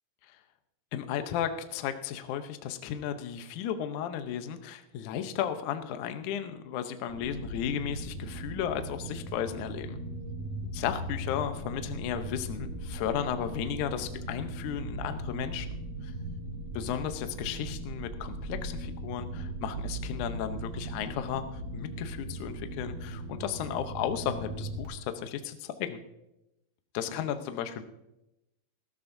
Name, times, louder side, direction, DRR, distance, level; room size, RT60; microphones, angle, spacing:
voice 1, 0.9-10.0 10.7-15.7 16.0-16.1 16.7-21.4 21.7-26.0 26.9-27.8, left 9 dB, 85° left, 8 dB, 1.7 m, -34 dB
sound 1, 7.1-24.9, right 1 dB, 50° right, 2.4 m, -38 dB
19.0 x 13.5 x 2.7 m, 0.91 s
omnidirectional pair, 4.8 m